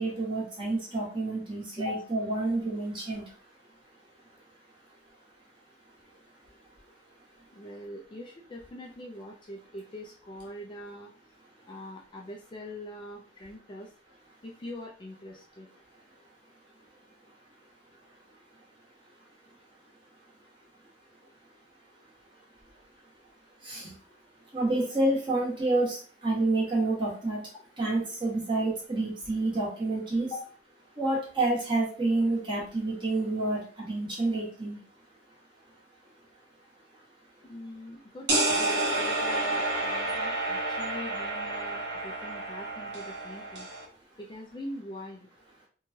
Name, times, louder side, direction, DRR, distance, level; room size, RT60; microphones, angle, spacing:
voice 1, 0.0-3.2 23.6-23.9 24.5-27.4 27.8-30.3 31.0-34.8, right 2 dB, 25° right, -5 dB, 1.1 m, -28 dB
voice 2, 7.5-11.1 11.7-13.9 14.4-15.7 30.3-30.5 37.4-43.7 44.2-45.3, left 1 dB, 25° left, -1 dB, 0.3 m, -43 dB
sound 1, 38.3-43.8, right 2 dB, 65° right, 0.9 m, -30 dB
3.0 x 2.2 x 2.7 m, 0.41 s
head